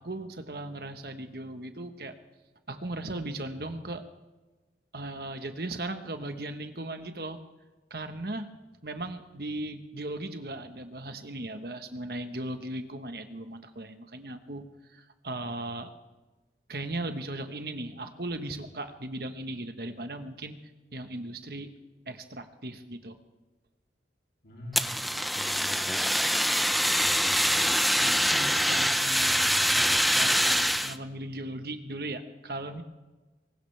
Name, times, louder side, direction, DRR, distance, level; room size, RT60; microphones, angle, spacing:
voice 1, 0.0-2.1 2.7-4.0 4.9-7.4 7.9-8.5 8.8-14.6 14.9-15.9 16.7-20.6 20.9-21.7 22.1-23.2 28.0-32.8, right 2 dB, 60° right, 8 dB, 1.3 m, -37 dB
voice 2, 24.4-25.0 25.3-26.3 26.9-27.7, equal, 65° left, 0 dB, 3.1 m, -45 dB
Fire, 24.7-31.0, equal, ahead, 0.4 m, -24 dB
21.5 x 19.0 x 3.4 m, 1.2 s
head